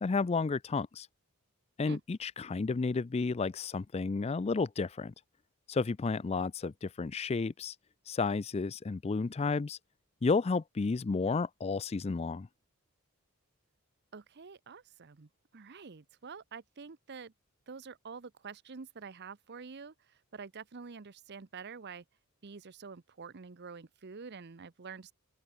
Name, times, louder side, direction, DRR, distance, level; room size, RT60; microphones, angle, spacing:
voice 1, 0.0-1.1 1.8-5.1 5.7-7.7 8.1-9.8 10.2-12.5, left 4 dB, 30° left, 0.4 m, -32 dB
voice 2, 14.1-17.3 17.7-19.9 20.3-22.0 22.4-25.1, right 5 dB, 50° right, 0.7 m, -47 dB
open air
head